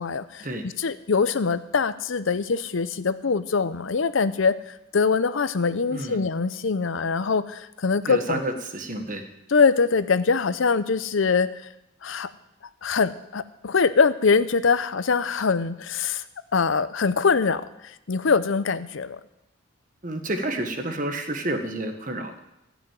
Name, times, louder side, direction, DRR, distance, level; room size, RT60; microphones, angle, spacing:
voice 1, 0.0-8.4 9.5-11.7 12.0-12.3 12.8-16.2 16.5-19.2, left 5 dB, 70° left, 14 dB, 0.6 m, -23 dB
voice 2, 8.1-9.2 20.0-22.4, right 1 dB, 40° right, 6 dB, 1.4 m, -30 dB
15.0 x 6.2 x 8.9 m, 0.87 s
head